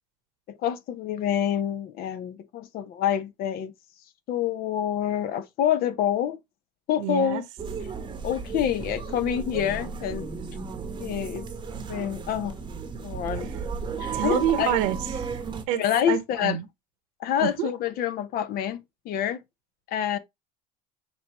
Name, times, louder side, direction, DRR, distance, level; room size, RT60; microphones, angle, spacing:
voice 1, 0.6-3.7 4.3-6.4 6.9-7.4 8.2-10.3 11.0-11.5 11.9-12.5 13.0-13.5 14.0-14.8 15.8-16.6 17.2-19.4 19.9-20.2, left 10 dB, 55° left, 0.8 m, -27 dB
voice 2, 7.0-7.4 13.4-13.5 14.1-15.8 16.1-16.7 17.4-17.7, right 11 dB, 75° right, 1.0 m, -28 dB
sound 1, 7.6-15.6, right 5 dB, 25° right, 0.9 m, -34 dB
6.5 x 2.7 x 2.9 m
supercardioid pair, 100°, 19 cm